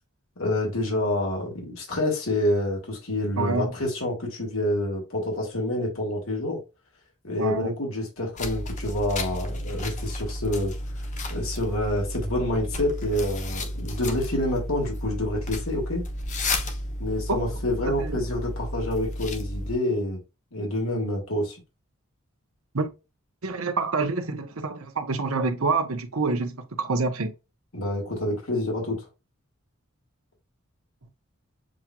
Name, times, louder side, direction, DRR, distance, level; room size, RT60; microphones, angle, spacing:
voice 1, 0.4-6.6 7.2-10.7 11.3-16.0 17.0-20.2 20.5-21.6 27.7-29.1, left 1 dB, 75° left, 2.2 m, -27 dB
voice 2, 3.4-3.7 7.4-7.7 17.3-17.4 17.8-18.2 22.7-22.9 23.4-27.3, right 3 dB, 80° right, 1.0 m, -27 dB
sound 1, 8.4-19.7, left 1 dB, 35° left, 0.9 m, -32 dB
7.4 x 3.0 x 2.3 m
head